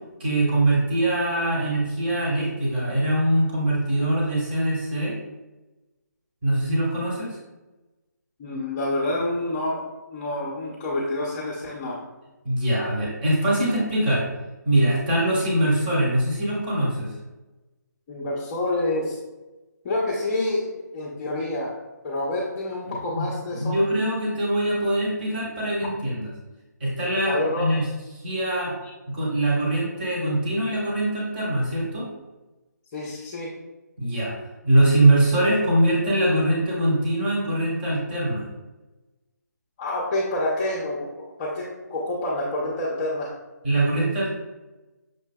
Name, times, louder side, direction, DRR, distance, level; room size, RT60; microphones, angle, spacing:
voice 1, 0.2-5.1 6.4-7.4 12.4-14.2 14.6-17.1 22.9-23.2 23.5-26.3 26.8-27.8 28.2-28.7 29.1-32.1 34.0-34.3 34.6-38.4 43.6-44.3, right 1 dB, 30° right, -5 dB, 1.2 m, -23 dB
voice 2, 8.4-9.8 10.1-12.0 18.1-19.2 19.8-21.7 22.0-23.8 27.3-27.8 32.9-33.5 39.8-43.3, left 1 dB, 20° left, -8 dB, 0.6 m, -28 dB
6.5 x 2.6 x 2.2 m, 1.1 s
figure-of-eight pair, 155°, 10 cm